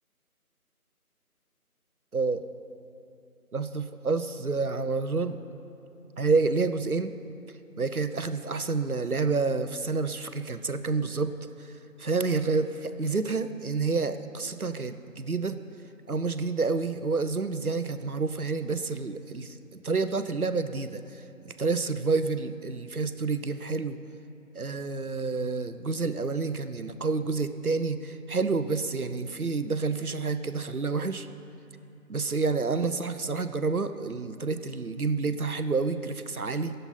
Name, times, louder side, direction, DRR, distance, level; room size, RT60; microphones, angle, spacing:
voice 1, 3.5-5.4 6.2-7.1 7.8-11.3 12.0-15.6 16.1-19.6 19.8-24.0 24.5-31.3 32.1-36.7, right 4 dB, 70° right, 10 dB, 0.9 m, -29 dB
12.5 x 8.1 x 9.6 m, 2.9 s
figure-of-eight pair, 170°, 45 cm